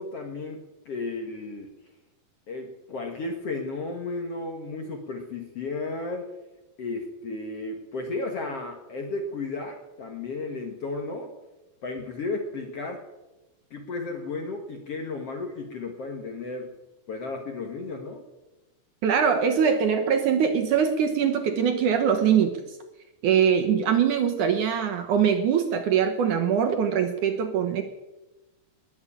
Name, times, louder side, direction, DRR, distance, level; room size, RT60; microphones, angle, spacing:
voice 1, 0.0-1.7 2.5-6.3 6.8-11.3 11.8-13.0 13.7-16.7 17.1-18.3, left 3 dB, 55° left, 3 dB, 1.8 m, -34 dB
voice 2, 19.0-22.5 23.2-27.8, right 7 dB, 65° right, 5 dB, 2.2 m, -22 dB
20.5 x 7.3 x 8.6 m, 1.0 s
omnidirectional pair, 4.5 m